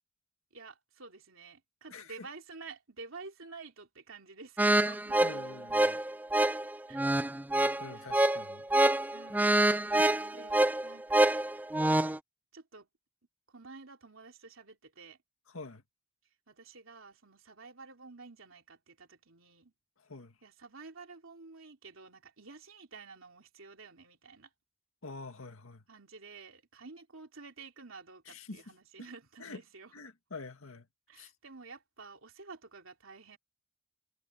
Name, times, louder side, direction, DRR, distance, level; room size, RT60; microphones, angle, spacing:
voice 1, 0.5-5.2 6.6-7.1 7.9-8.5 9.1-9.8 10.3-11.6 12.5-12.9 13.5-15.2 16.5-19.7 20.4-24.5 25.9-30.0 31.1-33.4, right 4 dB, 80° right, 3.2 m, -51 dB
voice 2, 1.9-2.3 5.2-6.0 7.8-8.7 10.0-10.2 15.5-15.8 20.0-20.4 25.0-25.8 28.3-28.6 29.4-29.6 29.9-30.9 31.2-31.3, left 3 dB, 90° left, 2.0 m, -46 dB
sound 1, 4.6-12.2, right 1 dB, 10° right, 0.4 m, -27 dB
head